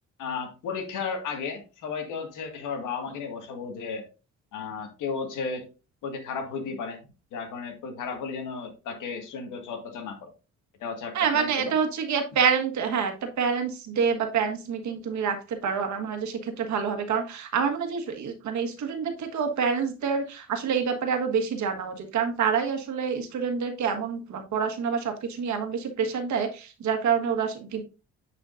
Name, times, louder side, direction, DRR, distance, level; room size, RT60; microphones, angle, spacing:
voice 1, 0.2-4.0 4.5-5.7 6.0-7.0 7.3-10.3 10.8-11.7, left 5 dB, 90° left, 5 dB, 1.9 m, -34 dB
voice 2, 11.1-27.8, right 6 dB, 70° right, 5 dB, 1.5 m, -27 dB
9.5 x 5.0 x 2.5 m, 0.32 s
cardioid pair, 90°, 30 cm